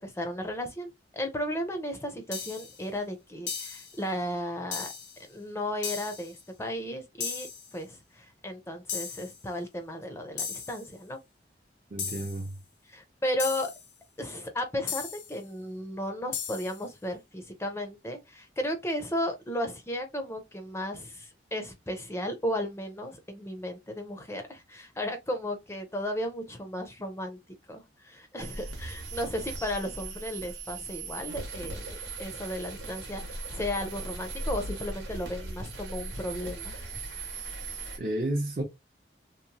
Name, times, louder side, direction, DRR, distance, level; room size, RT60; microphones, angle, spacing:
voice 1, 0.0-4.9 5.2-11.2 12.9-13.7 14.2-27.4 27.7-36.9, equal, 15° left, 0.5 m, -34 dB
sound 1, 2.3-2.8 3.5-4.0 4.7-5.2 5.8-6.3 7.2-7.7 8.9-9.4 10.4-10.9 12.0-12.5 13.4-13.9 14.9-15.4 16.3-16.8, left 7 dB, 85° left, 0.6 m, -36 dB
voice 2, 11.9-12.6 38.0-38.6, right 1 dB, 45° right, 0.5 m, -31 dB
sound 2, 28.4-38.0, right 3 dB, 85° right, 0.9 m, -38 dB
2.8 x 2.0 x 2.6 m
head